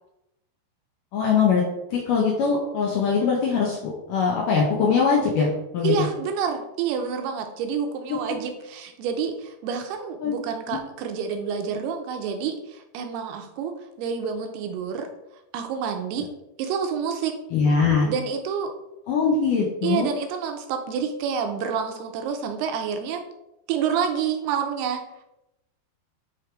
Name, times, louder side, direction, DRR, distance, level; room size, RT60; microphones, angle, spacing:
voice 1, 1.1-1.6 1.9-3.8 4.1-5.5 5.7-5.9 8.1-8.2 10.2-10.3 10.7-10.8 17.5-18.1 19.1-20.1, left 5 dB, 80° left, -2 dB, 1.9 m, -21 dB
voice 2, 5.8-15.1 15.5-16.3 16.6-17.3 18.1-18.7 19.8-23.2 23.7-25.0, right 6 dB, 80° right, 5 dB, 2.5 m, -28 dB
9.1 x 3.5 x 4.5 m, 0.88 s
omnidirectional pair, 5.1 m